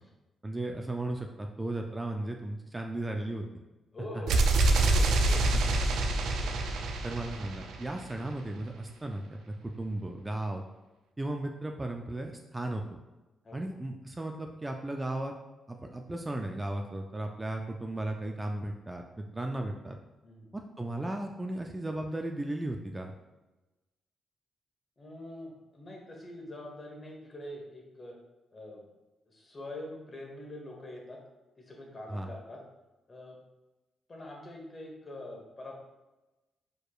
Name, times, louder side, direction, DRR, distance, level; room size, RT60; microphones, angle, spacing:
voice 1, 0.4-3.4 4.1-4.2 5.5-5.6 7.0-10.6 11.2-13.0 13.5-15.3 15.7-20.0 20.5-23.1 32.1-32.3, right 1 dB, 20° right, 3 dB, 0.5 m, -35 dB
voice 2, 3.9-4.4 4.7-5.5 6.4-6.6 13.4-13.7 20.2-20.5 25.0-28.2 28.5-28.9 29.3-31.2 31.6-32.6 33.1-33.4 34.1-35.7, left 1 dB, 40° left, -1 dB, 1.4 m, -44 dB
sound 1, 4.3-8.1, right 2 dB, 80° right, 0.4 m, -26 dB
4.7 x 4.5 x 2.4 m, 1.1 s
cardioid pair, 70°, 0 cm